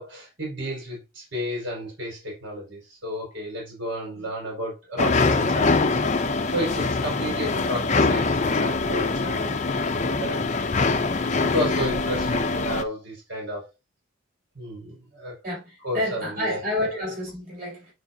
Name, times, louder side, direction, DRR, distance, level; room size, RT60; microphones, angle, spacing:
voice 1, 0.0-10.5 11.1-13.6 14.5-15.3 15.8-16.6, equal, 75° right, 4.7 m, -32 dB
sound 1, 5.0-12.8, left 3 dB, 35° left, 0.6 m, -23 dB
voice 2, 15.4-17.9, left 1 dB, 45° right, 4.6 m, -29 dB
9.8 x 4.7 x 2.7 m
head